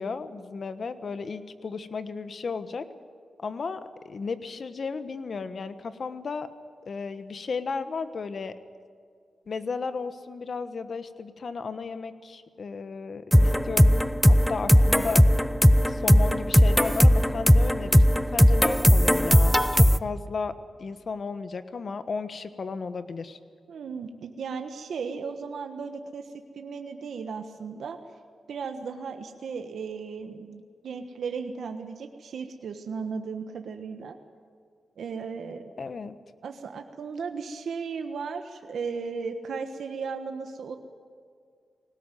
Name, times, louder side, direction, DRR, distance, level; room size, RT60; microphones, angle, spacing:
voice 1, 0.0-2.9 3.4-6.5 6.9-8.5 9.5-15.2 15.8-18.0 18.3-23.4 35.8-36.1, left 4 dB, 55° left, 11 dB, 1.3 m, -34 dB
sound 1, 13.3-20.0, equal, 5° left, 0.5 m, -18 dB
voice 2, 23.7-28.0 28.5-34.1 35.0-35.7 36.4-40.8, right 5 dB, 85° right, 6 dB, 1.3 m, -36 dB
21.0 x 18.5 x 9.2 m, 2.1 s
cardioid pair, 90°, 0 cm